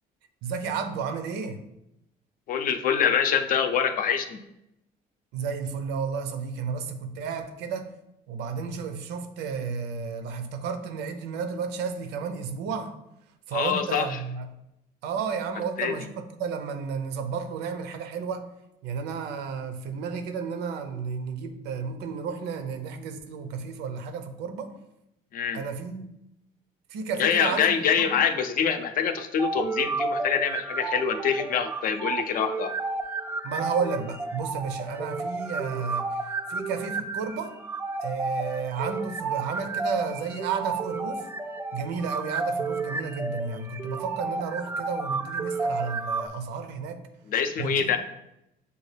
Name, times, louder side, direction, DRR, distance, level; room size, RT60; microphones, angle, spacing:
voice 1, 0.4-1.6 5.3-7.9 8.3-12.9 13.5-14.5 15.0-18.5 18.8-24.7 25.5-26.1 26.9-27.7 28.0-28.2 33.4-37.6 38.0-41.3 41.7-47.0 47.6-48.0, right 5 dB, 90° right, 8 dB, 0.6 m, -32 dB
voice 2, 2.5-4.4 13.5-14.2 15.8-15.9 25.3-25.6 27.2-32.7 47.3-48.0, left 7 dB, 55° left, 7 dB, 0.5 m, -25 dB
sound 1, 29.4-46.3, right 3 dB, 15° right, 0.3 m, -32 dB
6.7 x 2.3 x 3.2 m, 0.85 s
cardioid pair, 110°, 17 cm